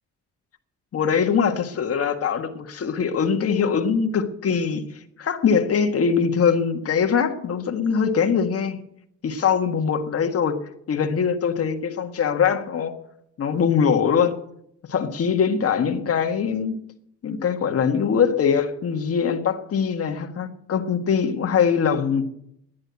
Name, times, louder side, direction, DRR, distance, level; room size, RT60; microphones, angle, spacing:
voice 1, 0.9-4.8 5.2-8.8 9.2-10.6 10.9-12.9 13.4-14.3 14.9-16.8 17.2-22.2, left 6 dB, 50° left, 5 dB, 1.7 m, -22 dB
11.0 x 10.5 x 8.3 m, 0.74 s
cardioid pair, 90°, 30 cm